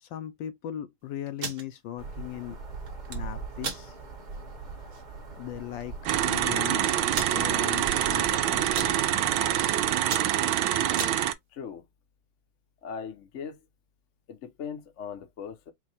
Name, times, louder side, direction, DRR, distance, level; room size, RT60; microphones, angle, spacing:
voice 1, 0.0-2.6 3.1-3.9 5.4-6.0 6.2-6.9 7.3-9.0, left 11 dB, 75° left, 1.2 m, -38 dB
sound 1, 1.3-1.6 2.9-3.2 3.6-3.8 4.3-4.4 4.8-5.0 5.8-5.9 6.1-6.2 7.1-7.4 8.0-8.3 8.6-8.9 9.5-9.7 10.0-11.2, right 5 dB, 45° right, 1.4 m, -35 dB
sound 2, 2.0-10.0, right 4 dB, 30° right, 1.0 m, -42 dB
sound 3, 6.1-11.3, right 12 dB, 80° right, 1.4 m, -25 dB
voice 2, 11.5-11.8 12.8-13.6 14.3-15.7, left 6 dB, 55° left, 0.8 m, -39 dB
4.6 x 2.2 x 4.0 m
omnidirectional pair, 2.2 m